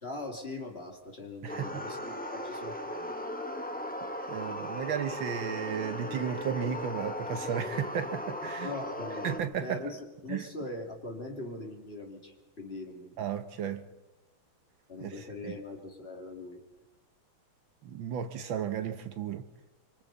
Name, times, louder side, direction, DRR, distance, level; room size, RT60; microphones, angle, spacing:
voice 1, 0.0-3.1 8.6-9.4 9.6-13.1 14.9-16.6, left 2 dB, 30° left, 2.6 m, -41 dB
voice 2, 1.4-1.9 4.3-8.7 9.2-9.8 10.3-10.5 13.2-13.9 15.0-15.5 17.8-19.5, right 8 dB, 70° right, 1.6 m, -34 dB
sound 1, 1.5-9.4, left 1 dB, 5° left, 1.2 m, -37 dB
27.0 x 25.0 x 4.0 m
omnidirectional pair, 2.3 m